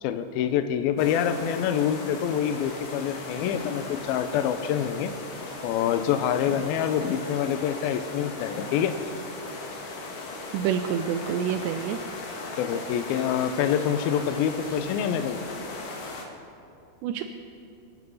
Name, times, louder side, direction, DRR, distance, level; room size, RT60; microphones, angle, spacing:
voice 1, 0.0-5.1 5.6-9.0 12.6-15.4, left 9 dB, 80° left, 9 dB, 2.2 m, -26 dB
sound 1, 1.0-16.2, left 3 dB, 60° left, 2.8 m, -38 dB
voice 2, 10.5-12.0 17.0-17.2, right 8 dB, 85° right, 5 dB, 2.7 m, -27 dB
24.5 x 9.3 x 5.5 m, 2.6 s
omnidirectional pair, 5.0 m